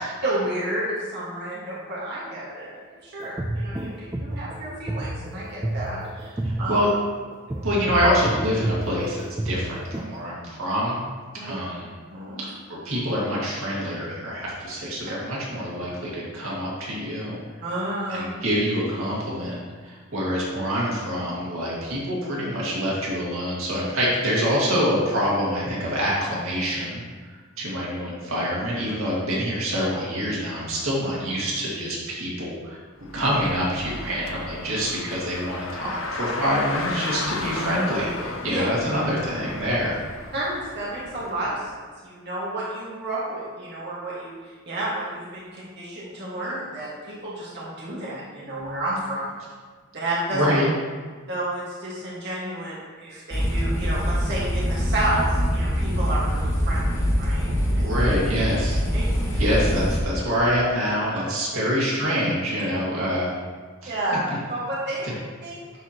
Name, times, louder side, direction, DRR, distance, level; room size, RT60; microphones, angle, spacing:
voice 1, 0.2-6.7 11.3-11.5 12.1-12.4 17.6-18.2 38.5-38.6 40.3-49.3 49.9-50.4 51.3-57.8 58.9-59.4 61.5-61.6 63.8-65.1 65.4-65.6, right 1 dB, 55° right, -7 dB, 1.7 m, -31 dB
sound 1, 3.2-10.2, right 1 dB, 15° right, 0.3 m, -30 dB
voice 2, 7.6-9.2 9.4-11.0 11.4-11.9 12.4-12.5 12.8-17.4 18.1-27.0 27.6-32.8 33.1-39.9 50.3-50.6 57.7-58.8 59.4-63.3 63.8-63.9, equal, 85° right, -6 dB, 2.0 m, -26 dB
Car, 33.0-41.6, left 3 dB, 70° left, 0.7 m, -34 dB
sound 2, 53.3-60.0, equal, 20° left, 1.8 m, -24 dB
11.5 x 4.3 x 2.9 m, 1.5 s
head